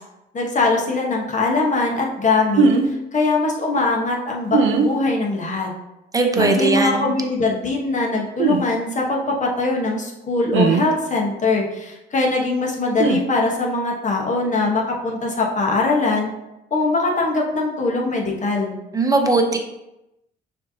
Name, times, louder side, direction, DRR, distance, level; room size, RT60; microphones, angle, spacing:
voice 1, 0.3-5.7 6.5-16.3 16.7-18.8, left 3 dB, 40° left, -1 dB, 1.1 m, -22 dB
sound 1, 2.6-2.9 4.5-4.9 6.3-6.6 8.4-8.6 10.5-10.9 13.0-13.2, right 4 dB, 85° right, 0.5 m, -18 dB
voice 2, 6.1-7.1 18.9-19.6, right 3 dB, 15° right, 4 dB, 0.7 m, -19 dB
6.4 x 2.8 x 2.8 m, 0.92 s
cardioid pair, 90°, 20 cm